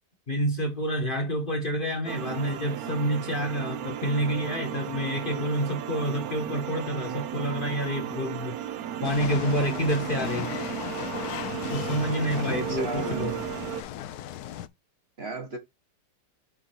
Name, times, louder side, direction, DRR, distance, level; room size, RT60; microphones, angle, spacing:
voice 1, 0.3-8.6 9.0-10.5 11.7-13.4, right 1 dB, 30° left, 1.4 m, -28 dB
sound 1, 2.1-13.8, right 10 dB, 65° right, 1.1 m, -35 dB
sound 2, 9.0-14.7, left 11 dB, 70° left, 1.1 m, -36 dB
voice 2, 12.4-13.4 15.2-15.6, right 3 dB, 40° right, 1.5 m, -34 dB
6.8 x 4.3 x 4.4 m
omnidirectional pair, 1.9 m